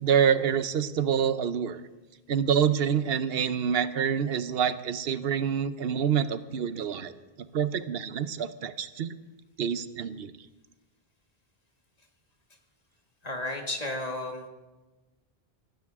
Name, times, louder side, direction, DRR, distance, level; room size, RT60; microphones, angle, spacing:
voice 1, 0.0-1.8 2.3-7.1 7.5-9.1 9.6-10.3, right 8 dB, 70° right, 13 dB, 1.0 m, -27 dB
voice 2, 13.2-14.5, left 2 dB, 40° left, 2 dB, 2.0 m, -33 dB
19.0 x 15.0 x 3.6 m, 1.2 s
omnidirectional pair, 1.1 m